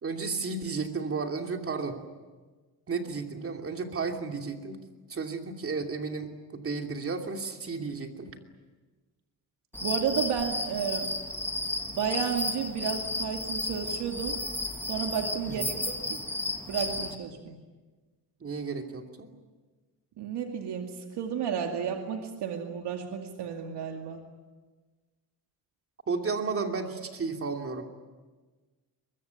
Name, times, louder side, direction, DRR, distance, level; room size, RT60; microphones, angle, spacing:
voice 1, 0.0-2.0 2.9-4.8 5.1-8.3 15.5-15.8 18.4-19.3 26.1-27.8, right 4 dB, 35° right, 4 dB, 2.9 m, -33 dB
sound 1, 9.7-17.2, left 2 dB, 5° left, 1.9 m, -33 dB
voice 2, 9.8-11.1 11.9-14.4 14.9-16.2 16.7-17.6 20.2-24.2, right 7 dB, 80° right, 3 dB, 2.4 m, -32 dB
23.5 x 22.5 x 9.7 m, 1.3 s
cardioid pair, 140°, 40 cm